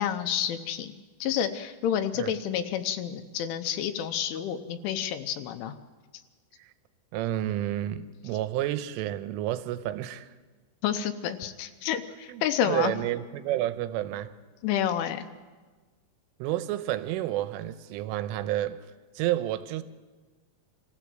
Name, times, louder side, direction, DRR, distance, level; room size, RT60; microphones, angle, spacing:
voice 1, 0.0-5.8 10.8-12.9 14.6-15.3, left 9 dB, 80° left, 3.2 m, -29 dB
voice 2, 7.1-10.3 12.3-14.3 16.4-18.8 19.2-19.8, right 13 dB, 85° right, 3.3 m, -30 dB
26.0 x 15.5 x 7.7 m
omnidirectional pair, 5.8 m